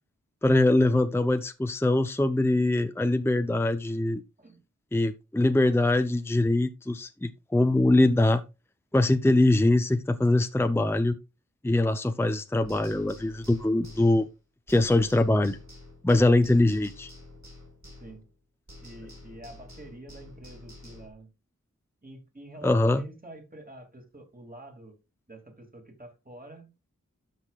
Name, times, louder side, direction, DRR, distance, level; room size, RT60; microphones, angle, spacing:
voice 1, 0.4-4.2 4.9-8.4 8.9-11.2 11.6-14.3 14.7-15.6 16.0-17.1 22.6-23.0, left 2 dB, 10° left, 0.6 m, -23 dB
sound 1, 12.6-18.4 18.7-21.1, left 2 dB, 60° right, 4.4 m, -49 dB
voice 2, 18.8-21.3 22.0-25.0 25.3-26.7, right 1 dB, 30° right, 2.7 m, -47 dB
12.5 x 5.8 x 2.4 m
wide cardioid pair, 50°, 31 cm